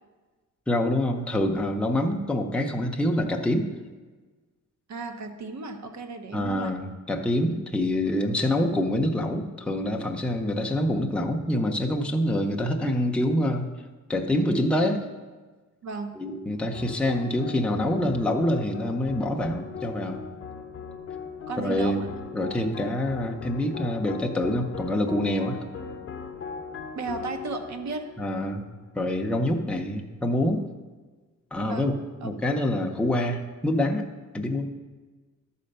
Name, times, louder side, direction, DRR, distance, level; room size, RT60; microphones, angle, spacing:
voice 1, 0.7-3.7 6.3-13.7 14.1-15.0 16.2-20.2 21.6-22.0 22.3-25.6 28.2-28.7 28.9-30.6 31.5-32.0 32.2-34.1 34.3-34.7, left 1 dB, 5° left, 2 dB, 0.6 m, -26 dB
voice 2, 4.9-6.7 15.8-16.1 21.5-22.1 26.9-28.0 31.6-31.9 32.2-32.3, right 3 dB, 60° right, 6 dB, 1.0 m, -34 dB
sound 1, 16.7-29.2, left 6 dB, 45° left, 0.7 m, -39 dB
12.0 x 4.2 x 6.6 m, 1.3 s
wide cardioid pair, 170°, 32 cm